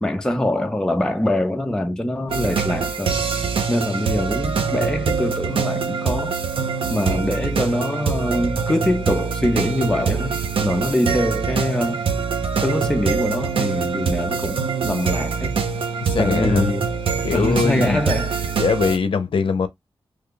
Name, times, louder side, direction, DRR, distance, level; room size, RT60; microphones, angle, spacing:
voice 1, 0.0-3.2 3.7-6.3 6.9-12.0 12.6-15.6 16.2-16.9 17.3-18.3, left 1 dB, 5° left, 0.6 m, -23 dB
sound 1, 2.3-19.0, right 5 dB, 85° right, 0.7 m, -24 dB
voice 2, 16.0-16.7 17.2-18.0 18.6-19.7, left 5 dB, 75° left, 0.6 m, -21 dB
3.2 x 2.3 x 3.7 m
wide cardioid pair, 140°, 9 cm